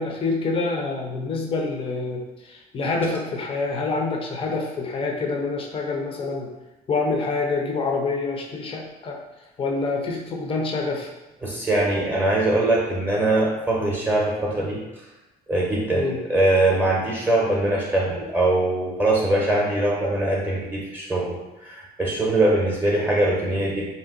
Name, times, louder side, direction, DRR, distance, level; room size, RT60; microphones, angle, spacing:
voice 1, 0.0-6.5 6.9-9.2 9.6-11.1 15.9-16.2, left 3 dB, 35° left, 1 dB, 0.5 m, -26 dB
voice 2, 11.4-14.8 15.5-23.9, right 2 dB, 10° right, -4 dB, 0.7 m, -22 dB
2.7 x 2.1 x 3.6 m, 1.0 s
cardioid pair, 110°, 17 cm